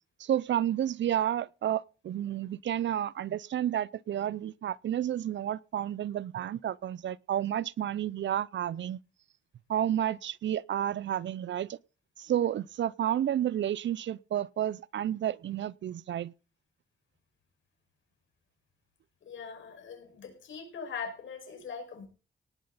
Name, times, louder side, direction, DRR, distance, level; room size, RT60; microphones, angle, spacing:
voice 1, 0.2-9.0 9.7-11.8 12.2-16.3, right 11 dB, 70° right, 0.6 m, -31 dB
voice 2, 19.2-22.1, left 5 dB, 80° left, 5.6 m, -41 dB
18.5 x 10.5 x 4.1 m
cardioid pair, 80°, 19 cm